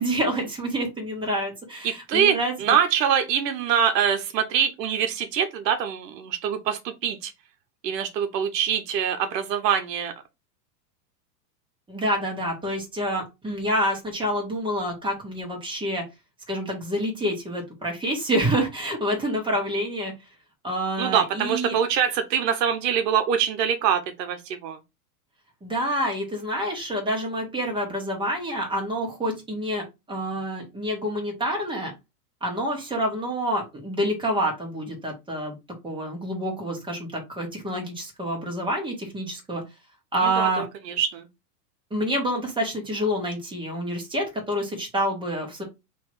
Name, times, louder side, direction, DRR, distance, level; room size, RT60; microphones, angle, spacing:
voice 1, 0.0-2.5 11.9-16.0 16.5-20.1 20.6-21.7 25.6-29.8 30.1-31.9 32.4-35.5 35.8-39.6 40.1-40.6 41.9-45.6, equal, 10° right, 1.7 m, -27 dB
voice 2, 1.8-7.3 7.8-10.1 21.0-24.8 40.2-41.3, right 8 dB, 85° right, 0.9 m, -24 dB
3.5 x 3.1 x 4.5 m
supercardioid pair, 135°, 48 cm